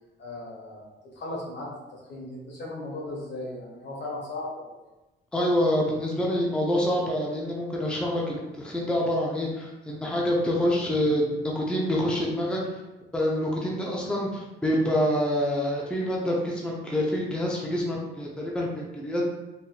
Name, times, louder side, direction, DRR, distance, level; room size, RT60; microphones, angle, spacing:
voice 1, 0.2-4.7 10.9-11.1, left 2 dB, 60° left, -4 dB, 1.3 m, -37 dB
voice 2, 5.3-11.3 11.5-12.6 13.1-19.2, equal, 5° left, -3 dB, 0.6 m, -26 dB
4.1 x 2.6 x 2.3 m, 1.1 s
cardioid pair, 90°, 20 cm